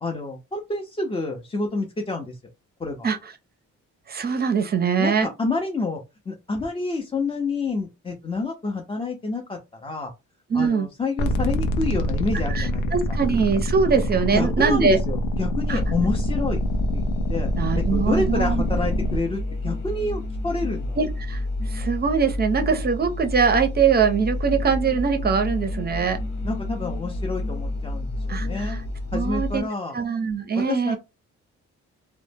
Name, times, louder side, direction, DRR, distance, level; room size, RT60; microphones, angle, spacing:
voice 1, 0.0-2.4 2.8-3.1 5.0-6.0 6.3-10.1 10.5-13.2 14.3-16.6 16.9-17.5 17.7-21.0 26.4-28.8 29.1-30.0 30.5-31.0, left 3 dB, 20° left, 0.5 m, -28 dB
voice 2, 4.1-5.3 10.5-10.9 12.5-15.0 15.7-15.8 17.6-18.6 21.0-21.4 21.7-26.2 28.3-28.8 29.1-29.6 29.9-31.0, right 6 dB, 35° right, 0.5 m, -22 dB
sound 1, 11.2-19.2, equal, 80° left, 0.5 m, -25 dB
sound 2, 15.7-29.6, left 2 dB, 65° left, 1.0 m, -29 dB
2.0 x 2.0 x 3.2 m
cardioid pair, 90°, 30 cm